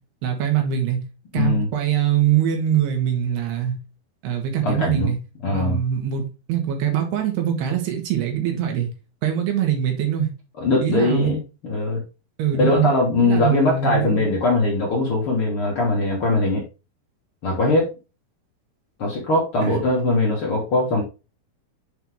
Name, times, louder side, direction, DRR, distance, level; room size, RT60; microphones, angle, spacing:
voice 1, 0.2-1.0 1.3-3.8 4.2-5.2 5.5-8.9 9.2-10.3 10.8-11.3 12.4-12.9 13.2-14.2 19.6-19.8, right 9 dB, 85° right, 3 dB, 3.7 m, -23 dB
voice 2, 1.3-1.7 4.6-5.1 5.4-5.8 10.6-12.0 12.5-16.6 17.4-17.9 19.0-21.0, left 2 dB, 50° left, -3 dB, 1.7 m, -21 dB
7.9 x 4.5 x 3.5 m, 0.30 s
omnidirectional pair, 4.6 m